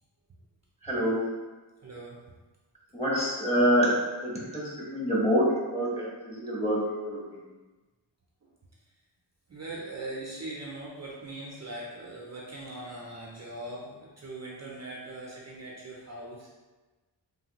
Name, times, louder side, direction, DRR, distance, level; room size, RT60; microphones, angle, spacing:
voice 1, 0.8-1.3 2.9-7.2, equal, 15° left, -6 dB, 1.0 m, -26 dB
voice 2, 1.8-2.2 9.5-16.5, right 2 dB, 35° right, -4 dB, 0.5 m, -40 dB
3.2 x 2.2 x 2.8 m, 1.2 s
wide cardioid pair, 70°, 45 cm